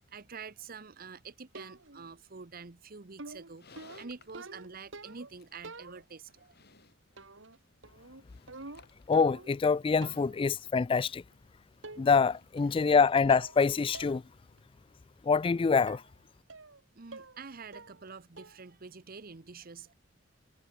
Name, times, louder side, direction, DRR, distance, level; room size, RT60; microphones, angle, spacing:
voice 1, 0.1-6.5 10.3-10.4 16.9-19.9, right 5 dB, 50° right, 1.0 m, -47 dB
sound 1, 1.6-2.1 3.2-5.3 5.6-6.3 7.2-7.6 7.8-9.6 10.0-10.4 11.3-11.4 11.8-12.3 12.6-13.0 13.3-13.6 13.9-14.2 14.6-14.7 15.9-16.1 16.5-16.8 17.1-17.4 17.7-18.1 18.4-18.7, right 3 dB, 75° right, 2.6 m, -47 dB
Livestock farm animals working animals, 3.3-14.5, left 4 dB, 55° left, 7.9 m, -63 dB
voice 2, 9.1-11.2 12.0-14.2 15.2-16.0, left 5 dB, 25° left, 0.3 m, -25 dB
head